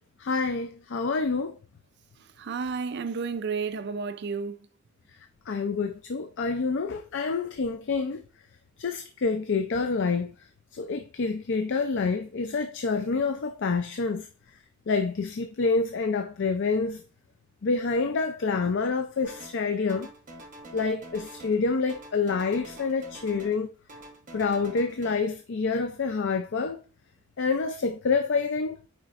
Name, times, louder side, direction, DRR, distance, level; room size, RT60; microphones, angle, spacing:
voice 1, 0.2-1.6 5.5-8.2 8.8-10.3 10.7-14.3 14.9-17.0 17.6-20.1 20.7-23.7 24.3-26.8 27.4-28.9, left 4 dB, 60° left, 0.5 m, -27 dB
voice 2, 2.4-4.7, right 5 dB, 55° right, 0.5 m, -31 dB
sound 1, 19.2-19.6 19.9-21.6 21.9-23.6 23.9-25.1, right 1 dB, 40° right, 1.2 m, -46 dB
8.9 x 4.2 x 2.5 m
head